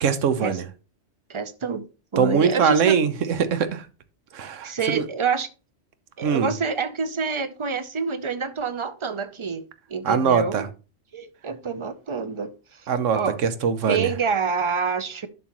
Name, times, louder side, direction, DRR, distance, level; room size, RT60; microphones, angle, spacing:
voice 1, 0.0-0.6 2.2-3.1 3.5-3.8 4.3-5.0 6.2-6.5 10.0-10.7 12.9-14.1, right 6 dB, 90° right, 1.2 m, -22 dB
voice 2, 1.3-1.8 2.1-3.0 4.6-5.5 6.2-10.7 11.1-13.4 13.9-15.3, right 5 dB, 35° right, 0.5 m, -27 dB
11.0 x 6.1 x 3.0 m
omnidirectional pair, 1.2 m